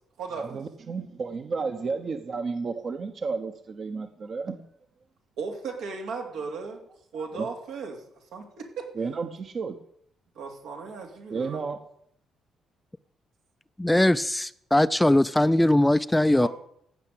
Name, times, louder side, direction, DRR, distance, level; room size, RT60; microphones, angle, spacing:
voice 1, 0.4-4.6 7.1-7.5 9.0-9.7 11.3-11.8, right 4 dB, 50° right, 7 dB, 1.0 m, -32 dB
voice 2, 5.4-6.8 7.1-8.0 8.3-8.9 10.3-11.6 16.3-16.5, right 5 dB, 85° right, 1 dB, 3.0 m, -36 dB
voice 3, 13.8-16.5, left 1 dB, 10° left, 15 dB, 0.4 m, -21 dB
15.0 x 5.9 x 8.4 m, 0.71 s
cardioid pair, 90°, 0 cm